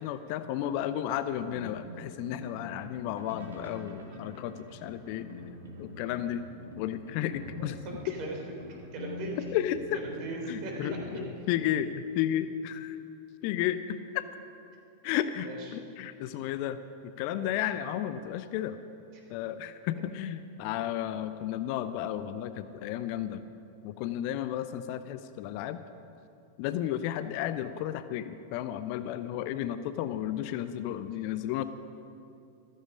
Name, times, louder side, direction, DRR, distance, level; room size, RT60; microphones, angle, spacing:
voice 1, 0.0-5.3 5.8-6.4 6.8-7.7 9.4-10.0 10.5-13.0 13.4-14.2 15.0-16.8 17.2-18.8 19.3-23.5 23.8-25.8 26.6-31.6, left 11 dB, 45° left, 12 dB, 0.6 m, -33 dB
sound 1, 1.4-11.3, left 2 dB, 70° right, 2.3 m, -45 dB
voice 2, 7.6-8.4 8.9-9.4 10.0-11.2 15.4-15.6 17.3-17.5 19.1-19.2, right 3 dB, 40° right, 0 dB, 3.6 m, -39 dB
14.5 x 14.5 x 5.1 m, 2.6 s
figure-of-eight pair, 90°, 0 cm